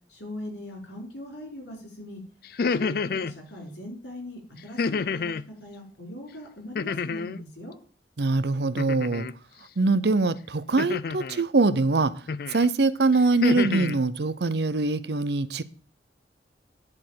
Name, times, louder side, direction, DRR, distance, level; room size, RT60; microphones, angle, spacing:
voice 1, 0.1-2.2 2.7-5.3 5.6-7.7, left 1 dB, 85° left, 0 dB, 5.4 m, -40 dB
sound 1, 2.4-3.4 4.8-5.5 6.8-7.4 8.8-9.3 10.8-11.4 12.3-12.7 13.1-14.0, left 5 dB, 55° left, 0.4 m, -29 dB
voice 2, 8.2-9.3 9.8-12.1 12.5-15.6, right 3 dB, 70° right, 16 dB, 0.7 m, -23 dB
11.0 x 4.4 x 7.6 m, 0.40 s
head